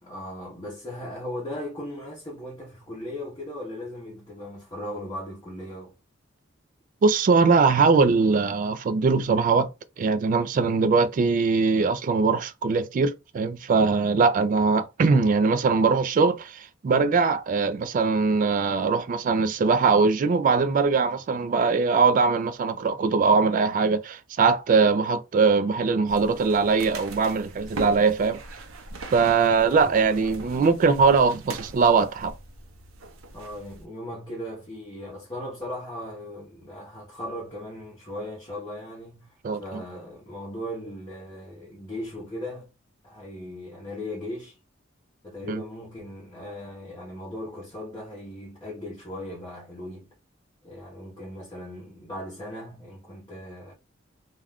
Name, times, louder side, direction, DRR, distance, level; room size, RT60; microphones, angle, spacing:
voice 1, 0.0-5.9 29.7-30.4 33.3-42.7 43.0-44.6 45.2-50.1 50.6-53.7, left 1 dB, 20° left, 0.8 m, -38 dB
voice 2, 7.0-9.7 10.0-28.4 29.1-32.3 39.4-39.8 45.5-45.6, right 4 dB, 40° right, 0.3 m, -21 dB
sound 1, 26.1-33.9, right 3 dB, 85° right, 0.6 m, -41 dB
2.4 x 2.2 x 3.4 m
head